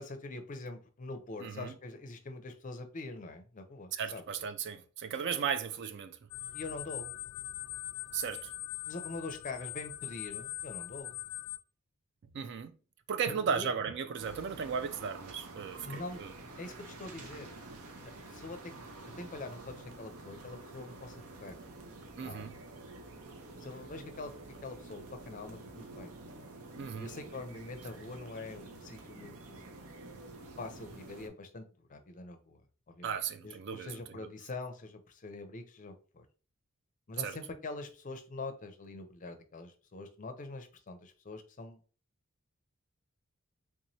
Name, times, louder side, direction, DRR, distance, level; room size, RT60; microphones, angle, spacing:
voice 1, 0.0-4.2 6.5-7.1 8.8-11.2 13.3-13.7 15.8-16.2 16.6-17.6 18.3-18.7 19.0-21.6 22.2-22.6 23.6-24.3 24.6-26.1 27.0-29.8 30.6-32.6 32.9-33.2 33.4-36.3 37.1-41.8, left 2 dB, 35° left, 0.5 m, -44 dB
voice 2, 1.4-1.7 3.9-6.2 8.1-8.5 12.2-12.7 13.1-16.3 22.2-22.6 26.7-27.1 33.0-34.3 37.2-37.4, right 6 dB, 55° right, 0.4 m, -36 dB
sound 1, 6.3-11.6, left 15 dB, 90° left, 0.4 m, -42 dB
sound 2, 14.2-31.3, right 2 dB, 80° right, 0.7 m, -49 dB
3.5 x 2.9 x 2.7 m
head